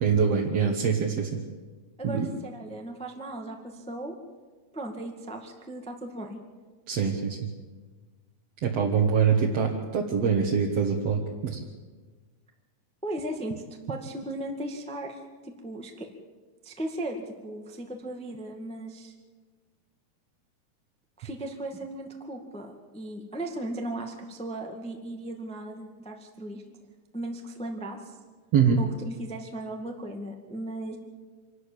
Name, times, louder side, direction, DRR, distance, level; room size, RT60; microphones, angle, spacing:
voice 1, 0.0-1.4 2.0-2.3 6.9-7.4 8.6-11.6 28.5-28.8, right 6 dB, 55° right, 0 dB, 2.2 m, -24 dB
voice 2, 2.0-4.1 4.7-6.4 13.0-13.6 13.9-16.1 16.6-19.1 21.2-26.6 27.1-28.2 28.8-31.0, right 1 dB, 5° left, 3 dB, 0.4 m, -37 dB
25.5 x 13.0 x 8.7 m, 1.4 s
omnidirectional pair, 4.1 m